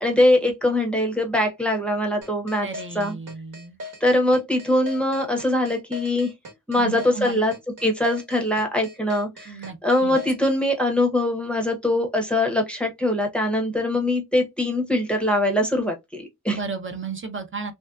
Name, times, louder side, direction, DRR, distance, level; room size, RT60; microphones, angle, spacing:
voice 1, 0.0-2.7 2.9-3.1 4.0-6.3 6.7-7.5 7.8-16.6, left 1 dB, 5° left, 0.7 m, -22 dB
sound 1, 2.2-10.6, left 1 dB, 70° right, 1.1 m, -39 dB
voice 2, 2.6-3.8 6.7-7.5 9.5-10.2 16.5-17.7, right 4 dB, 40° right, 0.6 m, -33 dB
3.2 x 2.6 x 2.3 m
wide cardioid pair, 155°, 32 cm